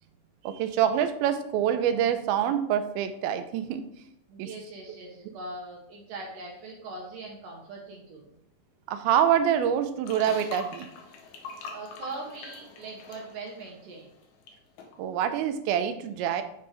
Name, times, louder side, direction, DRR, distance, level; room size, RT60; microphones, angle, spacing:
voice 1, 0.4-3.8 4.4-4.5 8.9-10.9 15.0-16.4, right 9 dB, 90° right, 10 dB, 2.4 m, -26 dB
voice 2, 4.3-8.3 11.7-14.1, right 2 dB, 70° right, -1 dB, 2.4 m, -41 dB
sound 1, 10.1-14.5 14.8-15.0, left 4 dB, 85° left, 2.8 m, -44 dB
9.4 x 3.5 x 3.2 m, 0.76 s
omnidirectional pair, 4.2 m